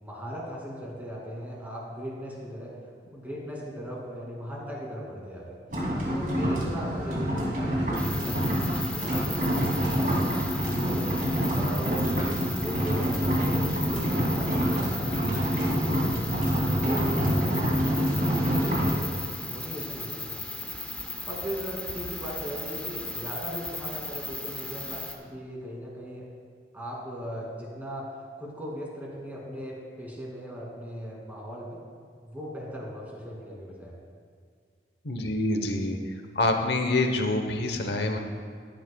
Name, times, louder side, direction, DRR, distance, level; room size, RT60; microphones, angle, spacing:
voice 1, 0.0-2.8 3.0-5.6 6.1-11.1 11.5-16.3 16.6-19.1 19.5-20.7 21.0-26.3 26.7-28.1 28.4-31.8 32.2-33.9, equal, 10° right, -4 dB, 2.4 m, -38 dB
sound 1, 5.7-18.9, equal, 50° right, 2.6 m, -26 dB
sound 2, 8.0-25.2, left 2 dB, 5° left, 0.8 m, -37 dB
voice 2, 35.0-36.0 36.3-38.2, left 2 dB, 70° left, 4 dB, 0.9 m, -26 dB
16.5 x 10.5 x 2.3 m, 2.1 s
head